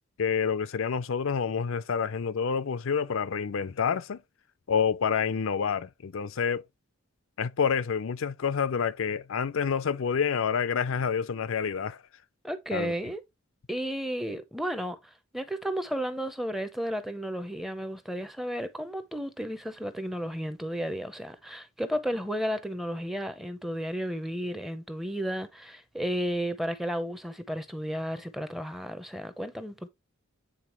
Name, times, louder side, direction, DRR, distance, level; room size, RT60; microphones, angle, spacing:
voice 1, 0.2-4.2 4.7-6.6 7.4-12.0 12.7-12.9, left 6 dB, 70° left, 0.5 m, -28 dB
voice 2, 12.4-13.2 13.7-15.0 15.3-29.9, equal, ahead, 0.6 m, -33 dB
8.8 x 3.9 x 3.0 m
head